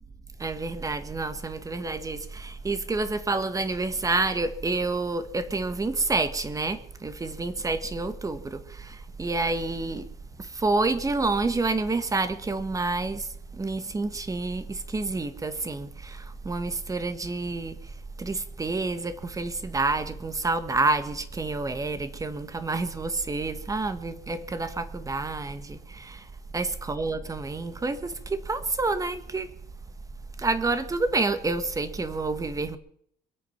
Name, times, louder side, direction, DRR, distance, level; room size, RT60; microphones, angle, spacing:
voice 1, 0.4-10.1 10.4-13.3 13.5-17.8 18.2-26.3 26.5-29.5 30.4-32.8, right 3 dB, 20° right, 1.5 m, -28 dB
23.0 x 8.6 x 5.9 m
cardioid pair, 110°, 17 cm